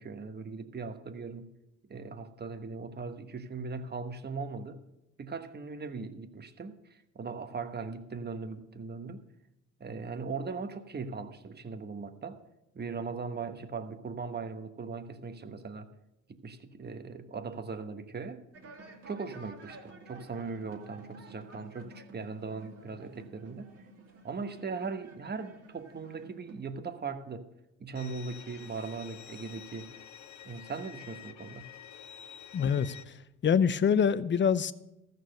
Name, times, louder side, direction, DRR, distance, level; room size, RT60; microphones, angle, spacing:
voice 1, 0.0-1.5 1.9-4.8 5.2-9.2 9.8-12.4 12.7-15.9 16.3-18.4 19.1-23.7 24.2-27.5 27.8-30.0 30.4-31.7, right 4 dB, 30° right, 1.2 m, -39 dB
sound 1, 18.5-26.6, right 2 dB, 50° right, 2.3 m, -52 dB
Bowed string instrument, 27.9-33.0, left 9 dB, 65° left, 1.0 m, -49 dB
voice 2, 32.5-33.2 33.4-34.7, left 7 dB, 35° left, 0.6 m, -25 dB
14.0 x 6.8 x 6.4 m
supercardioid pair, 70°, 31 cm